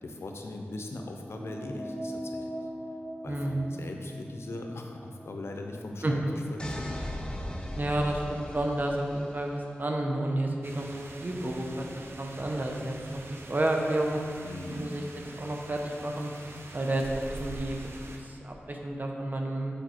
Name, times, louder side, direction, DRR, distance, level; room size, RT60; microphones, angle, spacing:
voice 1, 0.0-2.7 3.2-7.0 14.4-14.9, left 2 dB, 80° left, 2 dB, 0.7 m, -40 dB
sound 1, 1.3-6.1, equal, 15° right, 1.7 m, -41 dB
voice 2, 3.3-3.7 6.0-6.1 7.8-11.8 12.2-14.2 14.7-15.0 15.4-16.3 16.7-17.0 17.3-17.8 18.2-19.7, right 1 dB, 45° right, 1 dB, 0.9 m, -30 dB
sound 2, 6.6-9.5, left 1 dB, 20° left, 0.8 m, -38 dB
sound 3, 10.6-18.2, right 2 dB, 65° right, 0.7 m, -45 dB
7.1 x 4.5 x 4.5 m, 2.3 s
cardioid pair, 50°, 4 cm